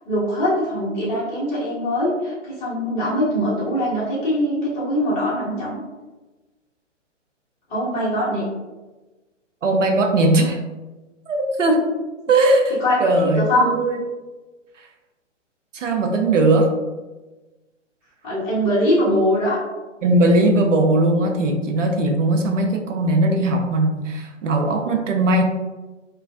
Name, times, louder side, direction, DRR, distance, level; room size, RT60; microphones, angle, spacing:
voice 1, 0.0-5.8 7.7-8.4 12.8-13.7 18.2-19.6, equal, 25° left, -9 dB, 1.1 m, -22 dB
voice 2, 9.6-10.6 11.3-11.9 12.3-14.0 15.7-16.7 20.0-25.4, right 2 dB, 80° right, 3 dB, 0.6 m, -19 dB
3.0 x 2.4 x 2.4 m, 1.2 s
figure-of-eight pair, 130°, 37 cm